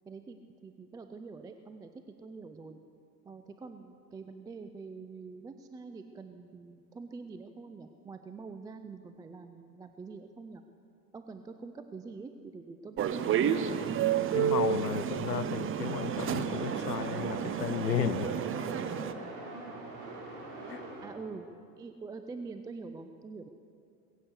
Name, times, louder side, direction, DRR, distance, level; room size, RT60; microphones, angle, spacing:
voice 1, 0.1-0.4 0.6-2.8 3.2-10.6 11.1-13.6 21.0-21.5 21.8-23.5, right 4 dB, 10° right, 8 dB, 0.4 m, -45 dB
sound 1, 13.0-19.1, right 9 dB, 25° right, 0.7 m, -31 dB
voice 2, 14.3-18.4 20.7-20.8, left 9 dB, 80° left, 14 dB, 0.8 m, -34 dB
sound 2, 15.8-21.1, right 2 dB, 50° right, 4.2 m, -43 dB
20.5 x 8.2 x 8.0 m, 2.5 s
figure-of-eight pair, 70°, 48 cm